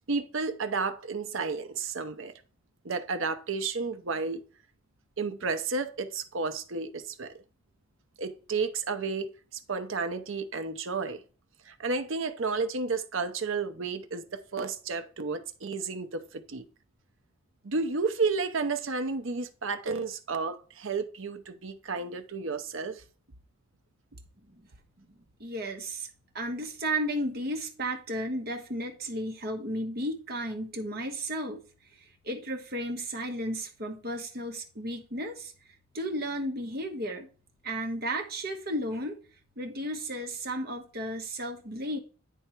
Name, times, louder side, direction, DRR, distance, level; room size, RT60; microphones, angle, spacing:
voice 1, 0.1-2.3 2.8-4.4 5.2-7.3 8.2-11.2 11.7-16.6 17.6-23.0, right 4 dB, 70° right, 0.7 m, -32 dB
voice 2, 25.0-26.1 26.3-37.3 37.6-39.2 39.6-42.0, right 1 dB, 45° right, 1.2 m, -34 dB
10.0 x 3.5 x 4.4 m
head